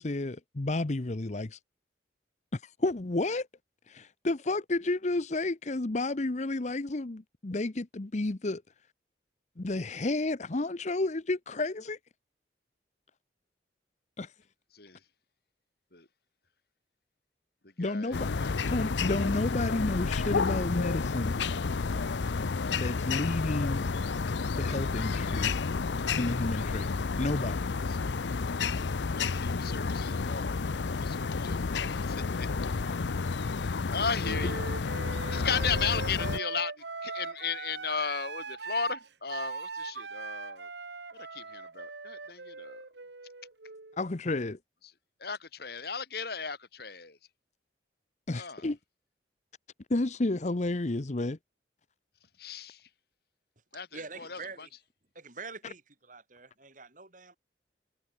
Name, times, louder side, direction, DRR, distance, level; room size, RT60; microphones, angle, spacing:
voice 1, 0.0-1.6 2.5-3.5 3.9-8.6 9.6-12.0 14.2-14.3 17.8-18.3 18.7-21.4 22.8-23.8 24.6-25.5 26.1-26.9 27.2-27.6 44.0-44.6 48.3-48.8 49.9-51.4, left 2 dB, 40° left, 0.8 m, -31 dB
voice 2, 17.8-18.5 27.9-28.0 28.7-28.8 29.1-30.6 31.0-32.5 33.6-34.6 35.3-36.7 37.0-40.7 41.3-42.8 45.2-47.2 48.3-48.6 52.4-52.8 53.7-54.4, left 6 dB, 60° left, 3.3 m, -36 dB
sound 1, 18.1-36.4, left 4 dB, 80° left, 0.6 m, -31 dB
Wind instrument woodwind instrument, 34.2-44.0, right 4 dB, 70° right, 1.6 m, -40 dB
voice 3, 53.9-54.7 55.1-57.4, right 4 dB, 45° right, 5.6 m, -45 dB
head